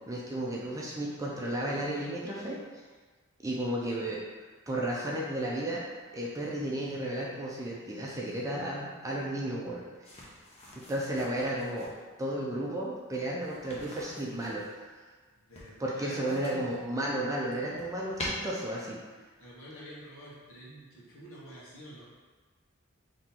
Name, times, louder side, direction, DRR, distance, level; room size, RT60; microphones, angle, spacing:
voice 1, 0.1-2.6 3.4-4.2 4.7-5.8 6.1-9.8 10.8-11.9 12.2-15.0 15.8-19.0, right 1 dB, 15° right, -4 dB, 0.5 m, -33 dB
sound 1, 10.0-12.0 13.4-14.7 15.5-16.8 17.2-18.3, left 1 dB, 30° left, 0.7 m, -46 dB
voice 2, 15.3-16.7 19.4-22.0, equal, 75° left, -7 dB, 1.3 m, -48 dB
3.8 x 2.9 x 4.3 m, 1.4 s
head